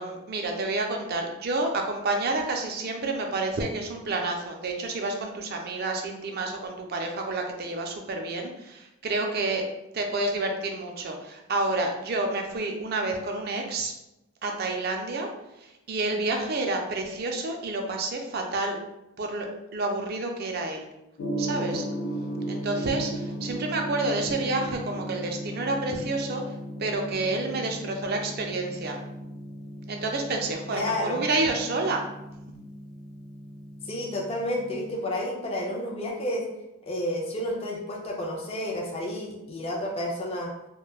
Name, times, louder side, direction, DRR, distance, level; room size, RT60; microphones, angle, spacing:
voice 1, 0.0-9.7 9.9-13.9 14.4-15.3 15.6-18.8 19.2-20.9 21.4-21.8 22.5-26.4 26.8-29.0 29.9-32.0, right 2 dB, 45° right, 3 dB, 0.4 m, -29 dB
Gong, 21.2-34.9, right 1 dB, 90° left, 0.4 m, -36 dB
voice 2, 30.7-31.2 33.8-36.4 36.9-40.5, left 1 dB, 25° left, -1 dB, 0.5 m, -30 dB
3.2 x 2.2 x 2.3 m, 0.91 s
head